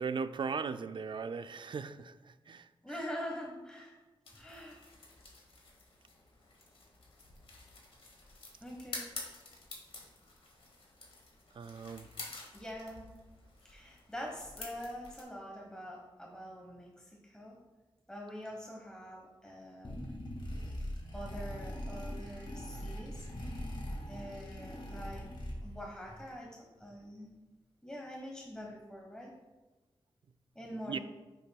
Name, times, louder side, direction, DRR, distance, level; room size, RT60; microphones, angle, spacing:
voice 1, 0.0-3.0 4.7-4.8 11.5-12.3 30.7-31.0, right 5 dB, 55° right, 0.4 m, -39 dB
voice 2, 2.8-3.9 4.3-4.8 8.6-9.1 12.5-13.1 13.6-17.5 18.1-20.1 21.1-23.3 23.5-23.6 24.0-27.3 27.8-29.3 30.5-31.0, equal, 10° left, 1.2 m, -45 dB
sound 1, 4.2-15.2, left 2 dB, 75° left, 1.8 m, -49 dB
sound 2, 19.8-25.9, equal, 55° left, 2.0 m, -41 dB
9.6 x 7.0 x 2.3 m
wide cardioid pair, 80°, 10 cm